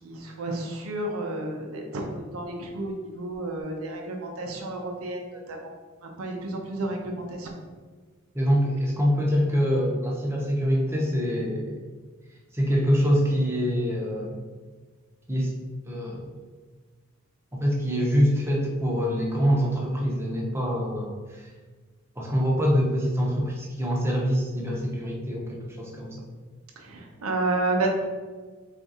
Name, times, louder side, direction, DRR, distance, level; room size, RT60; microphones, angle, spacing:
voice 1, 0.0-5.7 6.0-7.5 26.8-28.0, right 2 dB, 80° right, 2 dB, 0.6 m, -31 dB
voice 2, 8.3-11.8 12.5-14.4 15.3-15.5 15.8-16.3 17.5-21.5 22.2-26.3, equal, 10° right, -2 dB, 0.7 m, -25 dB
3.5 x 2.5 x 4.0 m, 1.4 s
head